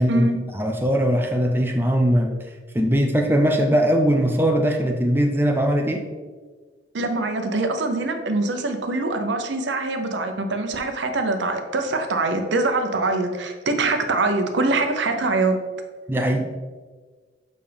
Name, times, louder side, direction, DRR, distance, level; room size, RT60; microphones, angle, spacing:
voice 1, 0.5-2.4 2.7-6.0 16.1-16.6, equal, 10° right, 3 dB, 0.5 m, -20 dB
voice 2, 6.9-15.6, right 2 dB, 75° right, 6 dB, 0.7 m, -23 dB
6.8 x 5.2 x 3.4 m, 1.4 s
head